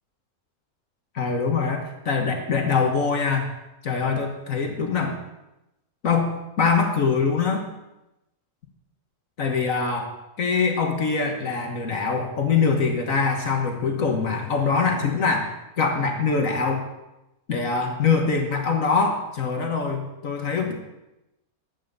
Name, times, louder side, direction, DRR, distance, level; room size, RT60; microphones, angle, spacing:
voice 1, 1.2-3.5 3.8-5.2 6.0-7.7 9.4-15.5 15.8-16.8 17.5-20.7, left 5 dB, 60° left, 3 dB, 1.8 m, -23 dB
12.0 x 8.9 x 6.8 m, 0.96 s
omnidirectional pair, 1.6 m